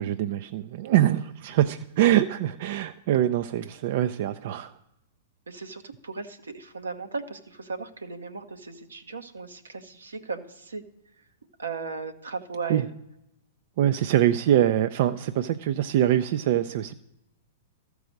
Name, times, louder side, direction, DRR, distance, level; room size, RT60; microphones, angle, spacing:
voice 1, 0.0-4.7 12.7-12.8 13.8-16.9, right 12 dB, 55° right, 11 dB, 0.4 m, -24 dB
voice 2, 5.5-10.8 11.6-12.9, right 4 dB, 85° right, 7 dB, 0.9 m, -36 dB
13.5 x 4.7 x 6.5 m, 0.87 s
hypercardioid pair, 110°, 0 cm